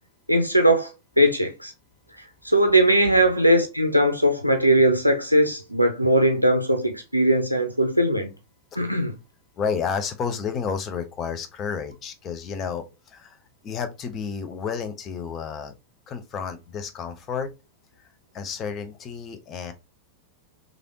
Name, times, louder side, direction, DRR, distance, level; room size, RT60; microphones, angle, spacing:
voice 1, 0.3-1.7 2.4-8.3 8.8-9.1, right 1 dB, 90° right, 0.4 m, -20 dB
voice 2, 9.6-13.4 13.6-15.7 16.1-17.5 18.3-19.7, left 6 dB, 30° left, 0.5 m, -31 dB
3.2 x 2.5 x 2.7 m
figure-of-eight pair, 90°, 0 cm